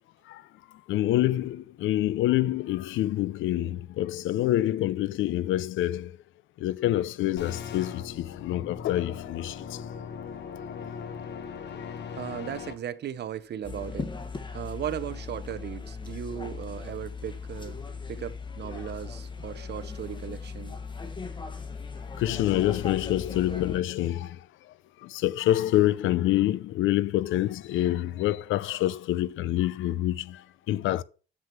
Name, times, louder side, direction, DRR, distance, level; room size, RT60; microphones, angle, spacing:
voice 1, 0.9-6.1 6.6-9.8 22.2-24.4 25.0-30.4 30.7-31.0, left 14 dB, 80° left, 0.5 m, -26 dB
sound 1, 7.4-12.7, left 7 dB, 60° left, 1.2 m, -39 dB
voice 2, 12.2-14.1 14.5-17.8 18.1-20.8, right 10 dB, 60° right, 0.7 m, -37 dB
sound 2, 13.6-23.8, left 4 dB, 25° left, 1.3 m, -38 dB
7.6 x 6.1 x 4.4 m
cardioid pair, 90°, 20 cm